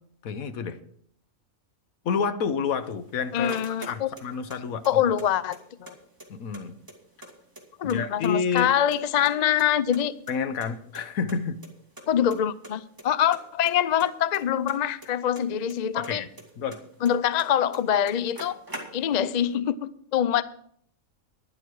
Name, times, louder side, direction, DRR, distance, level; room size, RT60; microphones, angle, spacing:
voice 1, 0.2-0.8 2.0-3.6 3.9-5.0 6.3-6.8 7.8-8.7 10.3-11.6 15.9-16.3 16.6-16.8, left 6 dB, 80° left, 11 dB, 1.4 m, -29 dB
sound 1, 2.8-4.6 4.8-5.9 6.2-6.3 6.5-8.0 8.2-9.0 9.2-10.7 10.9-11.0 11.3-11.4 11.6-11.7 12.0-12.4 12.6-13.0 13.3-15.8 16.0-17.5 17.7-17.8 18.0-19.3, right 1 dB, 15° right, 2.2 m, -43 dB
voice 2, 3.3-4.1 4.9-5.9 7.8-10.1 12.1-16.2 17.0-18.6 18.9-20.4, left 10 dB, 65° left, 16 dB, 0.4 m, -24 dB
11.5 x 11.0 x 4.7 m, 0.64 s
omnidirectional pair, 1.5 m